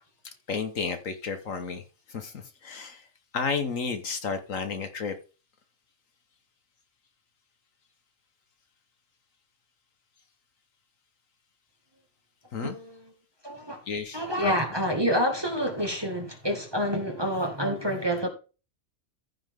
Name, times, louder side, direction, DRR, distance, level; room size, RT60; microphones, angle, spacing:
voice 1, 0.2-1.8 2.1-3.1 3.3-5.2 12.5-12.7 13.9-14.6, left 5 dB, 60° left, 1.4 m, -32 dB
voice 2, 12.6-13.1 13.4-13.8 14.1-18.3, equal, 15° right, 1.8 m, -28 dB
14.5 x 5.7 x 3.5 m
omnidirectional pair, 1.6 m